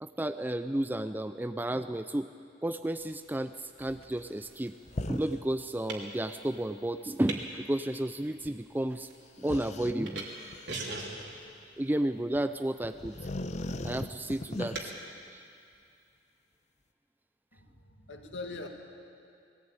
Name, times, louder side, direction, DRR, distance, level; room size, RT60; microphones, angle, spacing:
voice 1, 0.0-2.3 2.6-4.8 5.1-9.1 9.4-10.3 10.7-10.8 11.8-13.2 13.8-14.9 15.3-15.4, right 1 dB, 10° right, 9 dB, 0.4 m, -32 dB
sound 1, 2.9-14.9, right 3 dB, 70° right, 3.0 m, -46 dB
sound 2, 4.9-5.4 5.9-6.0 8.4-8.5 9.4-11.3 12.3-12.4 12.8-15.1, left 1 dB, 40° left, 0.8 m, -39 dB
voice 2, 17.5-18.7, left 3 dB, 85° left, 3 dB, 2.2 m, -42 dB
21.0 x 17.5 x 8.9 m, 2.5 s
head